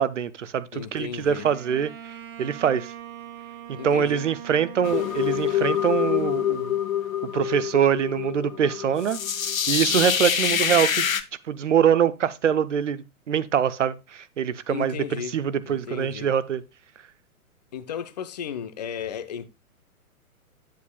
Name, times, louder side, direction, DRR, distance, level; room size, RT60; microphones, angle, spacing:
voice 1, 0.0-1.9 2.4-2.9 3.7-6.7 7.3-9.2 9.4-11.1 11.5-15.0 15.3-16.6, right 8 dB, 55° right, 0.7 m, -24 dB
voice 2, 0.7-1.5 3.8-4.3 14.7-16.3 17.7-19.5, left 8 dB, 30° left, 0.5 m, -35 dB
Bowed string instrument, 1.2-6.9, right 9 dB, 15° right, 0.6 m, -42 dB
sound 1, 4.8-11.2, left 9 dB, 65° left, 0.8 m, -26 dB
9.3 x 7.6 x 2.2 m
figure-of-eight pair, 120°, 44 cm